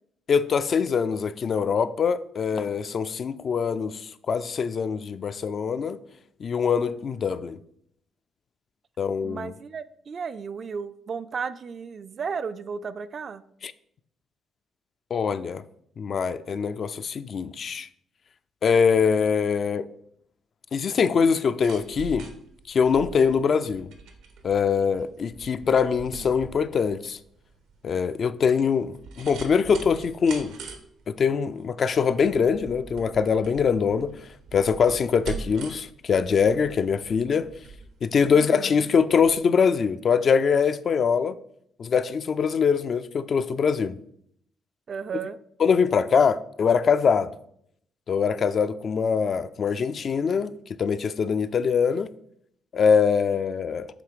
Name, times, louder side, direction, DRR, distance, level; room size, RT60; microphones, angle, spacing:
voice 1, 0.3-6.0 6.4-7.6 9.0-9.5 13.6-13.7 15.1-15.6 16.0-17.9 18.6-19.9 20.7-22.3 22.7-23.9 24.4-27.2 27.8-30.5 31.1-34.2 34.5-37.5 38.0-41.4 41.8-44.0 45.6-47.3 48.1-50.5 50.8-52.1 52.7-53.9, left 6 dB, 50° left, 0.3 m, -23 dB
voice 2, 9.2-13.4 38.3-38.9 44.9-45.4, right 6 dB, 50° right, 0.3 m, -34 dB
sound 1, 21.4-38.9 39.2-39.3, right 5 dB, 85° right, 0.9 m, -43 dB
7.5 x 3.1 x 5.0 m
cardioid pair, 90°, 0 cm